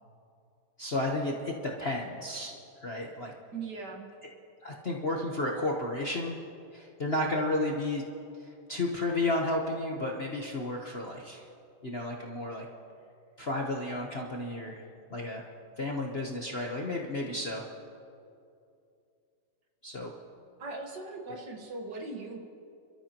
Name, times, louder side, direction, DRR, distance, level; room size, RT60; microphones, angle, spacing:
voice 1, 0.8-2.5 2.8-3.3 4.6-6.4 6.7-8.0 8.4-11.4 11.8-12.6 13.4-14.8 15.1-15.4 15.8-17.6 19.8-20.1, left 2 dB, 40° left, -1 dB, 1.0 m, -32 dB
voice 2, 3.5-4.1 20.6-22.4, right 3 dB, 55° right, 1 dB, 2.0 m, -39 dB
29.5 x 13.0 x 3.0 m, 2.5 s
omnidirectional pair, 2.2 m